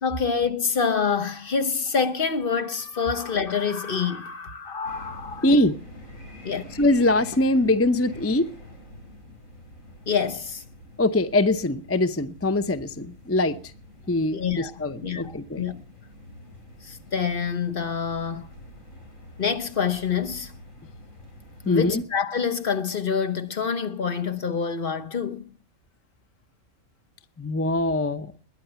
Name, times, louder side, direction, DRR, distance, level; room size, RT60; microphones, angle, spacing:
voice 1, 0.0-5.5 6.4-6.6 10.1-10.6 14.3-14.7 15.0-15.8 16.8-18.5 19.4-20.5 21.7-25.5, left 6 dB, 45° left, 1.2 m, -26 dB
sound 1, 4.8-22.0, left 1 dB, 85° left, 4.8 m, -46 dB
voice 2, 5.4-5.8 6.8-8.5 11.0-13.6 14.1-15.6 21.7-22.0 27.4-28.3, left 2 dB, 15° left, 0.5 m, -22 dB
20.5 x 9.9 x 6.9 m
omnidirectional pair, 1.4 m